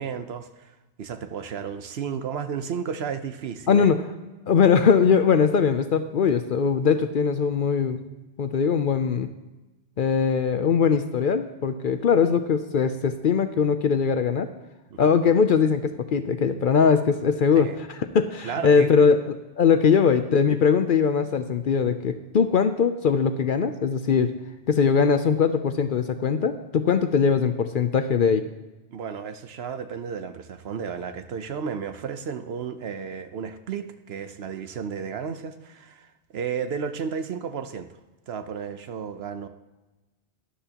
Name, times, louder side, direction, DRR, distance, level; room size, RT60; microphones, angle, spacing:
voice 1, 0.0-3.9 14.9-15.0 17.5-17.8 18.4-18.9 28.9-38.0 38.3-39.5, right 7 dB, 65° right, 10 dB, 0.9 m, -33 dB
voice 2, 3.7-4.0 4.5-8.0 8.4-9.3 10.0-14.5 15.0-19.2 19.6-24.3 24.7-28.4, left 6 dB, 55° left, 9 dB, 0.6 m, -21 dB
12.5 x 11.5 x 2.9 m, 1.1 s
omnidirectional pair, 1.2 m